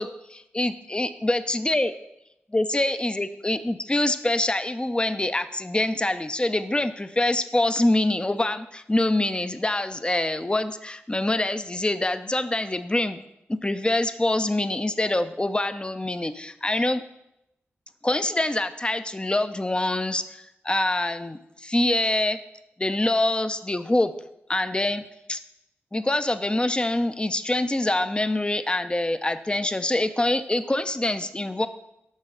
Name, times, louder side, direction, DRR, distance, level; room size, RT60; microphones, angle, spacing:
voice 1, 0.0-1.9 2.5-13.2 13.5-17.0 18.0-22.4 22.8-24.1 24.5-25.0 25.3-25.4 25.9-31.7, left 1 dB, 20° left, 10 dB, 0.6 m, -25 dB
10.5 x 6.3 x 3.9 m, 0.84 s
cardioid pair, 40°, 5 cm